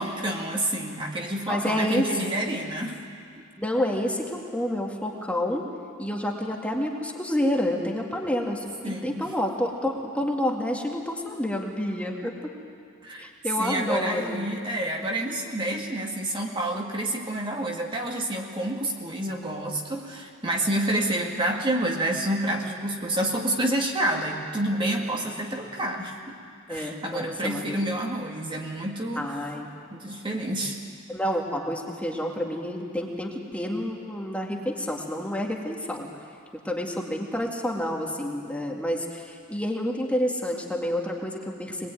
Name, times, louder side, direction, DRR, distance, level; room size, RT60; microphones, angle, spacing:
voice 1, 0.0-3.0 8.8-9.4 13.0-13.3 13.6-26.4 26.7-29.4 29.9-30.8, right 1 dB, 25° right, 0 dB, 2.0 m, -28 dB
voice 2, 1.5-2.1 3.6-5.7 6.0-12.3 13.2-14.4 25.1-25.2 25.5-25.7 26.7-27.9 29.2-29.7 31.1-36.1 36.6-41.9, left 1 dB, 5° left, 0 dB, 2.1 m, -29 dB
23.5 x 21.0 x 9.3 m, 2.3 s
head